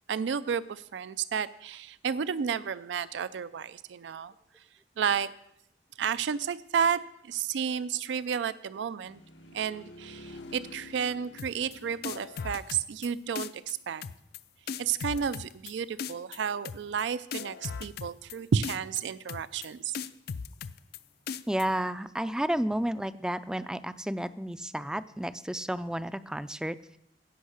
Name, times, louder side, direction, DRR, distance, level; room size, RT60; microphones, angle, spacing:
voice 1, 0.1-4.3 5.0-5.3 6.0-9.2 9.5-14.0 14.8-20.0, right 7 dB, 80° right, 16 dB, 0.4 m, -32 dB
sound 1, 9.0-14.0 23.5-24.2, left 2 dB, 85° left, 1.0 m, -50 dB
sound 2, 11.4-11.7 12.0-13.1 13.4-13.7 14.0-14.4 14.7-15.7 16.0-16.4 16.6-17.0 17.3-18.3 18.6-19.0 19.3-19.7 19.9-21.0 21.3-21.6, left 6 dB, 60° left, 0.4 m, -37 dB
voice 2, 21.5-26.8, right 1 dB, 5° right, 14 dB, 0.3 m, -31 dB
16.0 x 5.5 x 6.4 m, 0.77 s
head